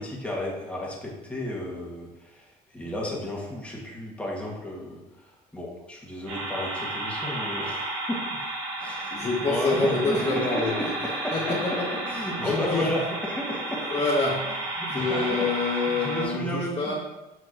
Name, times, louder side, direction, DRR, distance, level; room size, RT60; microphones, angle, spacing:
voice 1, 0.0-8.4 8.8-11.8 12.1-13.8 14.8-17.0, left 1 dB, 5° left, -4 dB, 2.0 m, -33 dB
sound 1, 6.3-16.2, right 2 dB, 85° right, 2.6 m, -32 dB
voice 2, 9.1-11.0 11.3-12.0 12.4-12.9 13.9-14.6 14.9-17.0, left 3 dB, 35° left, -4 dB, 1.4 m, -27 dB
7.8 x 5.9 x 3.0 m, 0.99 s
cardioid pair, 110°, 17 cm